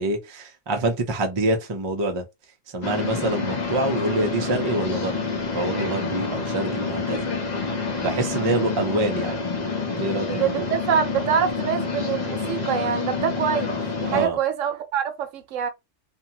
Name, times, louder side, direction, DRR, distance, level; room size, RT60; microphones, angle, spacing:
voice 1, 0.0-2.2 2.7-5.2 5.5-7.3 8.0-9.4 10.0-10.7 14.1-14.4, right 2 dB, 35° right, 0.4 m, -26 dB
sound 1, 2.8-14.3, left 4 dB, 40° left, 0.7 m, -28 dB
voice 2, 10.3-15.7, right 8 dB, 80° right, 1.0 m, -25 dB
2.6 x 2.3 x 2.8 m
omnidirectional pair, 1.3 m